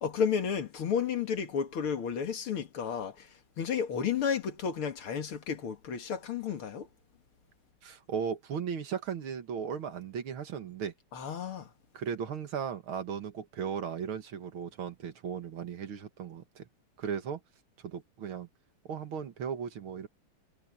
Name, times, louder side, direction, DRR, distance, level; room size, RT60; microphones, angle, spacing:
voice 1, 0.0-3.3 3.6-6.9 11.1-11.7, left 7 dB, 75° left, 2.8 m, -32 dB
voice 2, 7.8-10.9 11.9-16.7 17.0-17.4 17.8-18.5 18.8-20.1, right 7 dB, 70° right, 2.4 m, -36 dB
omnidirectional pair, 2.4 m